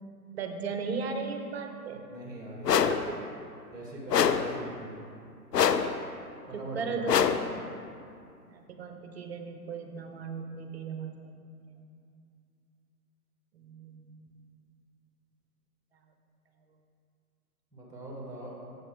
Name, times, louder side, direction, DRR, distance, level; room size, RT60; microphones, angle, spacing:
voice 1, 0.3-2.1 2.7-3.2 6.5-7.3 8.5-11.3 11.6-11.9 13.5-14.4, right 5 dB, 40° right, 5 dB, 0.7 m, -37 dB
voice 2, 1.9-2.9 3.7-5.0 6.5-7.2 17.7-18.5, right 1 dB, 10° right, -3 dB, 1.8 m, -42 dB
sound 1, 2.6-3.1 4.1-4.6 5.5-6.0 7.1-7.5, left 7 dB, 80° left, 0.6 m, -24 dB
8.9 x 7.7 x 3.4 m, 2.4 s
figure-of-eight pair, 120°, 48 cm